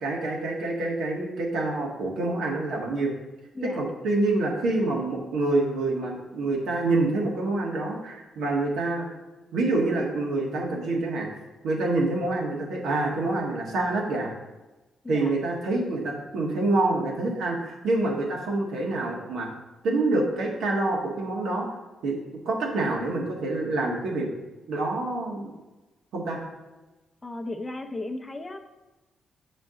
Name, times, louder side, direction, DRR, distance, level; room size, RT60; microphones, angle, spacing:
voice 1, 0.0-3.1 3.6-9.1 9.5-11.3 11.6-14.3 15.1-19.5 19.8-21.7 22.0-22.1 22.4-24.3 24.7-25.5 26.1-26.4, right 2 dB, 90° right, -1 dB, 1.6 m, -26 dB
voice 2, 27.2-28.6, left 2 dB, 20° left, 6 dB, 0.6 m, -35 dB
7.5 x 5.0 x 3.8 m, 1.1 s
cardioid pair, 125°, 0 cm